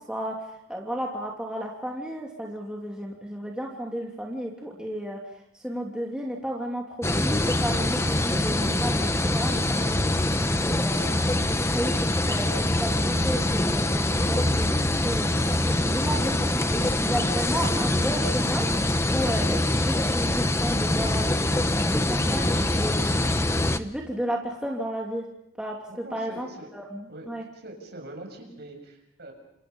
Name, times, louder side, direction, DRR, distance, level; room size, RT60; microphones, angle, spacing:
voice 1, 0.7-5.2 5.6-7.3 7.6-9.0 9.3-10.1 10.6-11.3 11.7-11.9 12.2-12.5 12.8-18.7 19.1-25.2 25.6-25.8 26.1-26.5 26.7-27.4, equal, 5° right, -2 dB, 3.0 m, -33 dB
sound 1, 7.0-23.8, left 1 dB, 15° left, 0.9 m, -24 dB
voice 2, 25.9-26.7 27.1-27.3 27.5-29.3, right 1 dB, 50° right, 3 dB, 7.4 m, -43 dB
28.5 x 27.5 x 5.5 m, 0.77 s
head